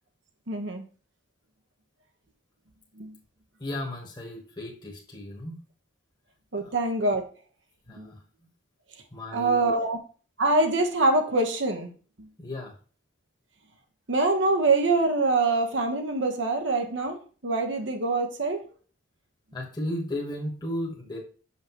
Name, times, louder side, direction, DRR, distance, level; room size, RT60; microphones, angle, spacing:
voice 1, 0.5-0.8 3.0-3.2 6.5-7.3 8.0-8.1 9.3-10.0 10.4-11.9 12.2-12.3 14.1-18.6, right 2 dB, 70° right, 4 dB, 1.1 m, -24 dB
voice 2, 3.6-5.6 6.6-6.7 7.9-8.2 9.1-9.7 12.4-12.7 19.5-21.2, left 1 dB, 20° left, -1 dB, 1.3 m, -35 dB
6.4 x 5.7 x 3.0 m, 0.38 s
head